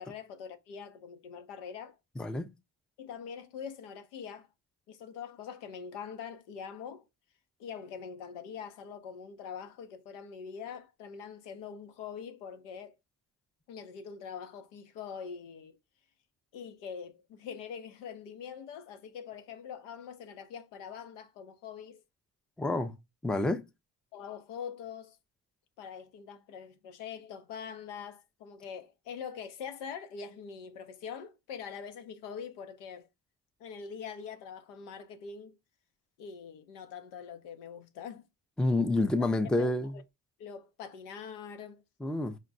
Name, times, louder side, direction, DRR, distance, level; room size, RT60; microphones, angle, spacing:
voice 1, 0.0-2.0 3.0-4.5 4.9-7.0 7.6-13.0 13.7-15.8 16.5-22.0 24.1-25.2 25.8-33.1 33.6-35.6 36.2-38.3 39.5-40.0 40.4-41.8, left 7 dB, 80° left, 0.7 m, -43 dB
voice 2, 2.2-2.5 22.6-22.9 23.2-23.6 38.6-39.9 42.0-42.4, left 2 dB, ahead, 0.4 m, -28 dB
5.0 x 2.1 x 2.5 m
supercardioid pair, 65°, 41 cm